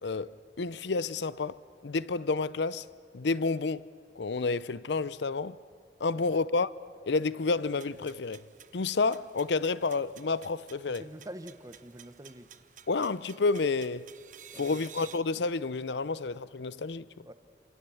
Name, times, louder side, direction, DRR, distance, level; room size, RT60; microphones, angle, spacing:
voice 1, 0.0-2.9 3.1-3.9 4.2-5.6 6.0-6.7 7.0-8.4 8.7-11.1 12.9-14.1 14.5-17.1, left 3 dB, 80° left, 0.6 m, -30 dB
sound 1, 7.6-15.2, right 9 dB, 45° right, 1.0 m, -53 dB
voice 2, 11.0-12.5 14.5-14.8 17.3-17.4, right 1 dB, 20° right, 1.1 m, -45 dB
28.0 x 27.5 x 7.1 m
head